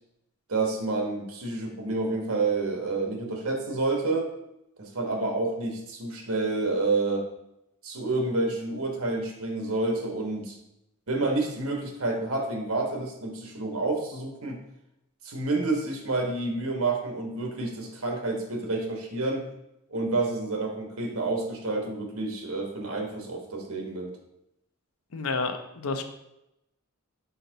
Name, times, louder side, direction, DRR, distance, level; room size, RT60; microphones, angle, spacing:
voice 1, 0.5-4.3 4.8-7.3 7.8-10.6 11.1-14.6 15.2-19.4 19.9-24.1, right 3 dB, 75° right, 3 dB, 1.3 m, -29 dB
voice 2, 25.1-26.0, left 3 dB, 75° left, 7 dB, 0.7 m, -30 dB
5.7 x 4.4 x 4.0 m, 0.86 s
head